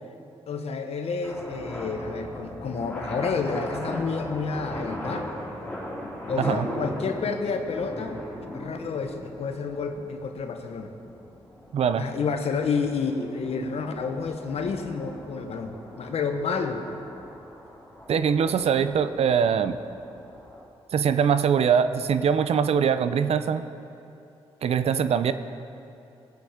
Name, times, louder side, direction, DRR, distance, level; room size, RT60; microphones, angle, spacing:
voice 1, 0.5-5.3 6.3-8.2 8.5-10.9 12.0-16.8, left 5 dB, 70° left, 6 dB, 1.2 m, -30 dB
sound 1, 1.2-20.6, equal, 15° left, 3.5 m, -39 dB
voice 2, 11.7-12.1 18.1-19.8 20.9-23.6 24.6-25.3, right 7 dB, 70° right, 11 dB, 0.6 m, -22 dB
19.5 x 8.2 x 5.0 m, 2.8 s
cardioid pair, 80°, 11 cm